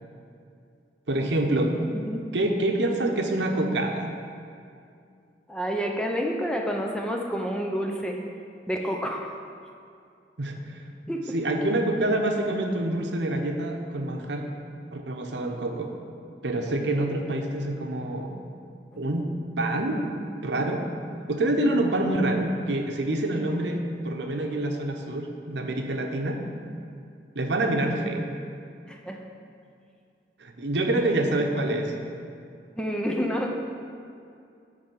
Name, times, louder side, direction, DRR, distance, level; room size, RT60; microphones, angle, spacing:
voice 1, 1.1-1.7 2.3-4.1 10.4-10.8 11.3-14.5 14.9-15.9 16.4-18.4 18.9-19.3 19.6-20.0 20.4-20.8 21.3-26.4 27.3-28.3 30.4-31.9, right 1 dB, 80° right, 3 dB, 0.8 m, -26 dB
voice 2, 5.5-8.2 8.7-9.4 11.1-11.3 18.9-19.0 28.9-29.2 32.8-33.5, equal, 5° left, 1 dB, 0.5 m, -29 dB
10.0 x 3.4 x 6.8 m, 2.4 s
head